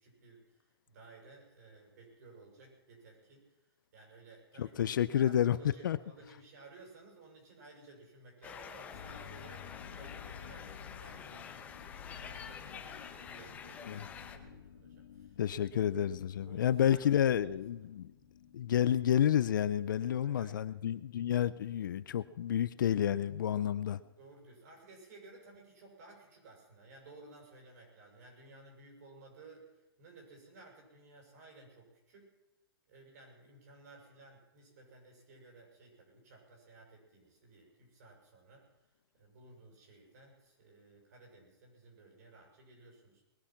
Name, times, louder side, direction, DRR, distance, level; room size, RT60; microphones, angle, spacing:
voice 1, 0.0-15.7 16.4-17.9 20.2-20.6 24.2-32.3 32.9-38.7 39.1-43.3, right 2 dB, 45° right, 6.6 m, -57 dB
voice 2, 4.6-5.6 5.8-6.0 13.9-14.0 15.4-18.1 18.5-24.0, left 10 dB, 55° left, 0.6 m, -30 dB
sound 1, 8.4-14.4, left 7 dB, 10° left, 1.0 m, -48 dB
sound 2, 8.9-24.1, left 8 dB, 75° left, 2.3 m, -54 dB
21.0 x 10.0 x 5.9 m
hypercardioid pair, 160°, 13 cm